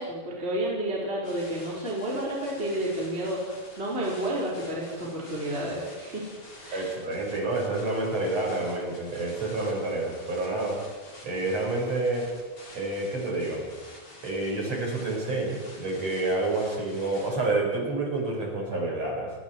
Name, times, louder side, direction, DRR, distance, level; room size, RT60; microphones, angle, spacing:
voice 1, 0.0-6.3 6.6-6.9, right 1 dB, 15° right, -5 dB, 4.2 m, -31 dB
sound 1, 1.2-17.3, left 1 dB, 30° left, 5.7 m, -48 dB
voice 2, 6.7-10.8 11.2-12.3 12.7-13.7 14.2-19.3, right 2 dB, 35° right, -1 dB, 6.2 m, -28 dB
30.0 x 20.0 x 4.7 m, 1.4 s
omnidirectional pair, 5.7 m